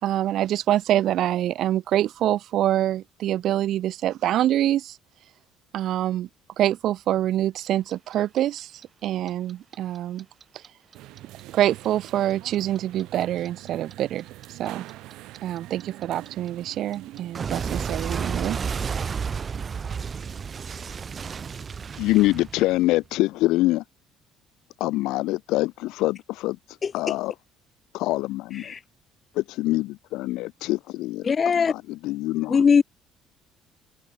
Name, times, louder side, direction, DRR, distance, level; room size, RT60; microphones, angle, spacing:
voice 1, 0.0-5.0 5.7-6.3 6.6-8.7 9.0-10.3 10.5-10.6 11.5-14.9 15.4-18.6, right 12 dB, 60° right, 3.4 m, -25 dB
Clock, 7.7-10.7 10.9-13.9 14.2-23.1, right 6 dB, 30° right, 5.4 m, -32 dB
sound 1, 10.9-18.0, right 17 dB, 80° right, 5.3 m, -44 dB
voice 2, 22.0-23.8 24.8-26.6 26.9-27.3 27.9-28.7 29.3-31.3 31.6-32.6, left 18 dB, 80° left, 4.9 m, -25 dB
voice 3, 31.2-31.7 32.5-32.8, left 6 dB, 30° left, 1.4 m, -19 dB
cardioid pair, 145°, 0 cm